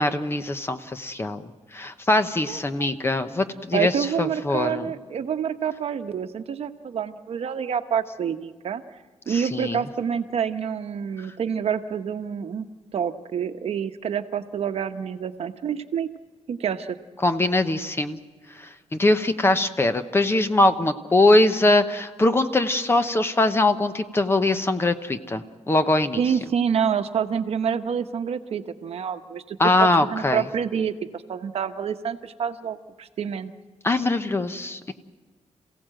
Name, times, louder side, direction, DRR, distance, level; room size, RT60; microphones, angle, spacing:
voice 1, 0.0-4.9 9.3-9.8 17.2-18.2 18.5-26.2 29.6-30.4 33.8-34.9, left 2 dB, 20° left, 9 dB, 0.9 m, -22 dB
voice 2, 2.5-2.9 3.7-8.8 9.3-12.7 12.9-16.1 16.5-17.0 26.2-33.5, right 7 dB, 65° right, 8 dB, 0.9 m, -27 dB
27.5 x 16.0 x 7.7 m, 1.4 s
wide cardioid pair, 155°, 11 cm